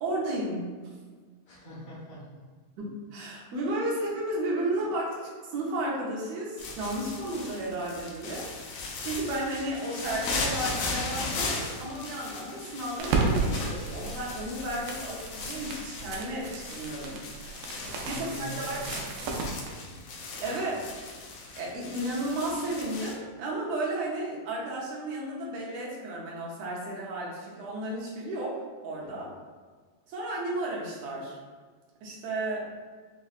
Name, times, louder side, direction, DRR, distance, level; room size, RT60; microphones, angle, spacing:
voice 1, 0.0-0.6 2.8-5.2 5.5-8.8 9.0-17.2 18.1-18.8 20.4-20.8 21.5-29.3 30.1-31.4 32.0-32.7, right 1 dB, 70° right, -4 dB, 1.7 m, -33 dB
voice 2, 1.4-2.5 17.8-20.6 29.0-29.2, equal, 60° left, -12 dB, 1.3 m, -45 dB
sound 1, 6.6-23.1, left 3 dB, 75° left, 1.8 m, -37 dB
sound 2, 13.0-19.7, right 3 dB, 85° right, 2.0 m, -33 dB
6.0 x 2.2 x 2.4 m, 1.5 s
omnidirectional pair, 3.4 m